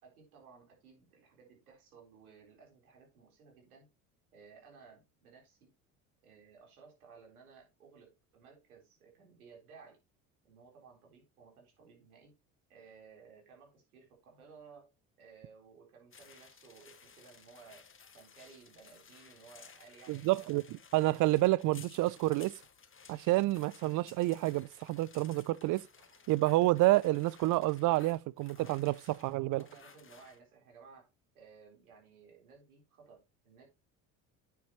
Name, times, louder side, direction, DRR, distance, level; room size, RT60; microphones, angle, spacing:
voice 1, 0.0-3.9 4.3-5.7 6.2-10.0 10.4-12.3 12.7-17.9 18.1-20.6 28.5-28.8 29.5-31.1 31.3-33.6, right 5 dB, 85° right, 3.9 m, -58 dB
sound 1, 16.1-30.4, left 6 dB, 30° left, 1.7 m, -57 dB
voice 2, 20.1-20.6 20.9-22.5 23.1-25.9 26.3-29.6, right 18 dB, 45° right, 0.5 m, -29 dB
9.3 x 7.3 x 3.0 m
hypercardioid pair, 65°, 43 cm